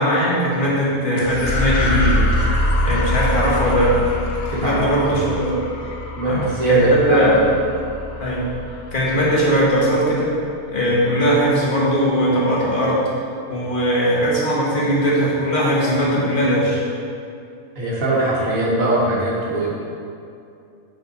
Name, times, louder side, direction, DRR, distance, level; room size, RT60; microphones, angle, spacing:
voice 1, 0.0-2.3 2.8-4.0 4.4-5.6 6.2-7.4 8.2-8.5 8.9-10.3 10.7-13.0 13.5-16.8, equal, 40° left, -6 dB, 1.4 m, -19 dB
sound 1, 1.2-9.8, left 1 dB, 60° left, 0.9 m, -24 dB
voice 2, 6.2-7.3 17.8-19.7, right 2 dB, 75° right, -5 dB, 1.6 m, -20 dB
6.4 x 4.5 x 4.0 m, 2.5 s
omnidirectional pair, 1.4 m